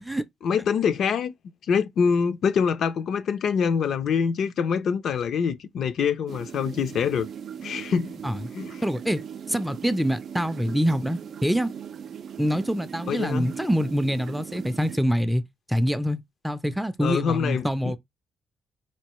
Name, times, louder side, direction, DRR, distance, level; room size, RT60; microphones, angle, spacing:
voice 1, 0.4-1.3 1.7-7.3 7.6-8.2 8.5-8.8 13.1-13.5 17.0-17.9, left 6 dB, 65° left, 0.5 m, -25 dB
sound 1, 6.3-15.0, right 8 dB, 60° right, 0.4 m, -39 dB
voice 2, 8.8-9.2 9.5-11.7 12.4-15.4 15.7-18.0, equal, 5° right, 0.5 m, -25 dB
4.4 x 2.7 x 3.0 m
cardioid pair, 95°, 0 cm